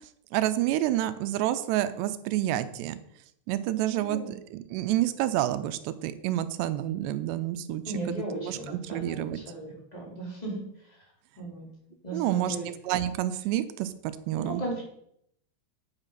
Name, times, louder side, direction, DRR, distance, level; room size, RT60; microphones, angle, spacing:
voice 1, 0.3-3.0 3.5-7.8 8.1-9.4 12.1-13.9 14.3-14.6, right 13 dB, 85° right, 12 dB, 2.7 m, -29 dB
voice 2, 3.9-4.3 7.8-10.6 11.4-11.7 12.0-12.7 14.4-14.8, right 2 dB, 10° left, -3 dB, 3.1 m, -36 dB
9.0 x 9.0 x 5.7 m, 0.72 s
omnidirectional pair, 5.2 m